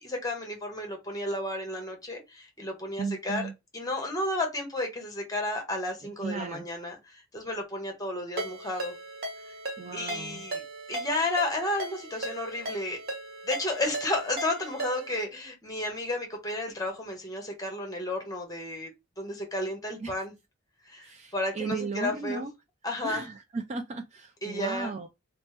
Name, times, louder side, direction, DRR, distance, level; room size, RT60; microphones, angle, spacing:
voice 1, 0.0-8.9 9.5-9.6 9.9-10.6 10.9-13.0 13.4-18.9 19.2-20.3 20.8-22.4 22.8-23.3 24.4-24.9, left 1 dB, 15° left, 1.0 m, -32 dB
voice 2, 3.0-3.5 6.2-6.7 9.8-10.5 20.0-20.1 21.0-22.5 23.0-25.1, right 4 dB, 35° right, 0.3 m, -35 dB
Ringtone, 8.4-15.2, right 2 dB, 50° right, 1.0 m, -37 dB
3.0 x 2.1 x 3.2 m
head